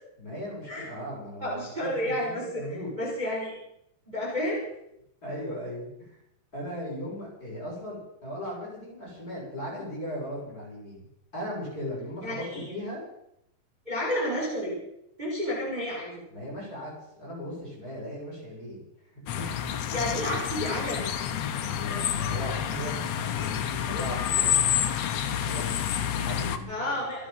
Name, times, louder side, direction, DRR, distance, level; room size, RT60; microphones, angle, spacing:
voice 1, 0.2-2.9 5.2-6.1 6.5-11.1 11.3-13.0 16.3-16.9 17.2-18.8 19.4-19.6 21.6-24.6 25.4-26.7 27.2-27.3, equal, 25° left, -5 dB, 7.6 m, -37 dB
voice 2, 1.4-2.6 3.0-3.6 4.1-4.6 12.2-12.7 13.9-14.8 15.2-16.2 19.9-21.0 26.7-27.3, left 1 dB, 10° right, -5 dB, 5.3 m, -30 dB
sound 1, 19.3-26.6, left 9 dB, 65° left, 1.9 m, -28 dB
27.0 x 9.1 x 5.5 m, 0.76 s
omnidirectional pair, 4.0 m